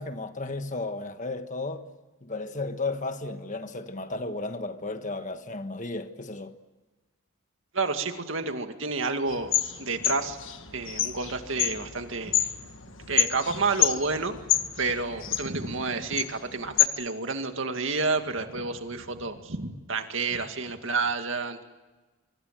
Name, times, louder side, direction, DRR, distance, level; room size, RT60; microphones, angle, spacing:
voice 1, 0.0-1.9 2.2-6.5, left 2 dB, 35° left, 1.4 m, -34 dB
voice 2, 7.7-9.5 9.8-10.4 10.7-12.5 13.0-14.4 14.8-21.6, right 4 dB, 65° right, 2.2 m, -30 dB
sound 1, 9.3-16.9, left 11 dB, 65° left, 1.6 m, -29 dB
25.0 x 24.5 x 7.6 m
head